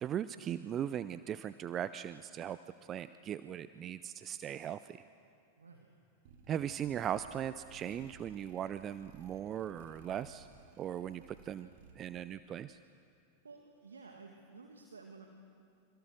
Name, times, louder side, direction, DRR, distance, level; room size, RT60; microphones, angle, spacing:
voice 1, 0.0-2.6 2.9-5.0 6.5-10.5 10.8-11.7 12.0-12.8, right 10 dB, 30° right, 14 dB, 0.6 m, -38 dB
voice 2, 5.6-5.9 13.4-15.3, right 4 dB, 75° right, 3 dB, 2.0 m, -53 dB
sound 1, 6.2-12.3, right 5 dB, 50° right, 3.0 m, -59 dB
29.5 x 26.0 x 6.3 m, 2.6 s
figure-of-eight pair, 90°, 0 cm